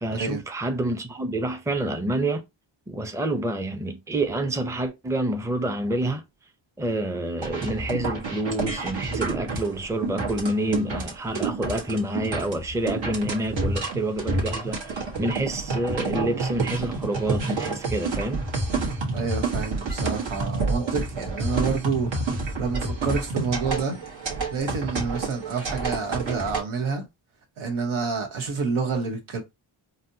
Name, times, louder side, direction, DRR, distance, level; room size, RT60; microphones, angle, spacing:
voice 1, 0.0-2.4 2.9-6.2 6.8-18.4, right 1 dB, 5° right, 0.5 m, -28 dB
sound 1, 7.4-26.6, right 3 dB, 70° right, 1.2 m, -29 dB
voice 2, 19.1-22.2 22.6-24.0 24.5-27.1 27.6-29.4, right 5 dB, 90° right, 1.1 m, -28 dB
4.1 x 2.1 x 2.7 m
wide cardioid pair, 80°, 48 cm